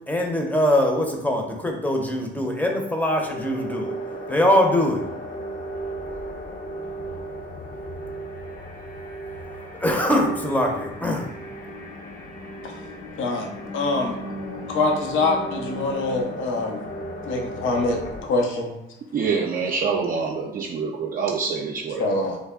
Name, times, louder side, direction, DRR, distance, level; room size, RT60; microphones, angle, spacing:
voice 1, 0.1-3.9 4.3-5.0 9.8-11.3, left 1 dB, 10° left, 2 dB, 0.6 m, -22 dB
sound 1, 3.2-18.2, right 1 dB, 45° left, 0.7 m, -35 dB
voice 2, 13.2-13.5 13.7-14.2 14.7-16.8 17.3-18.7 22.0-22.4, left 2 dB, 80° left, 2 dB, 0.6 m, -24 dB
voice 3, 19.1-22.3, right 5 dB, 45° right, -1 dB, 0.4 m, -26 dB
3.3 x 2.1 x 3.5 m, 0.90 s
cardioid pair, 90°, 20 cm